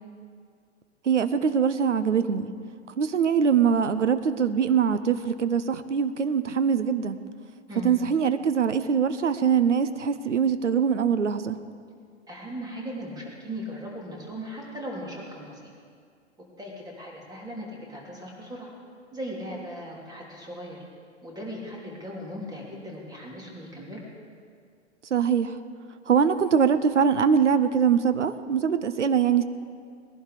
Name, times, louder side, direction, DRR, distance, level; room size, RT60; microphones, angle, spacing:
voice 1, 1.0-2.5 3.0-7.2 7.8-11.6 25.1-25.5 26.1-29.4, right 7 dB, 80° right, 11 dB, 0.8 m, -23 dB
voice 2, 12.3-15.6 16.6-18.7 19.1-20.8 21.2-24.0, equal, 10° right, -2 dB, 3.2 m, -38 dB
20.0 x 11.5 x 5.0 m, 2.1 s
figure-of-eight pair, 105°, 36 cm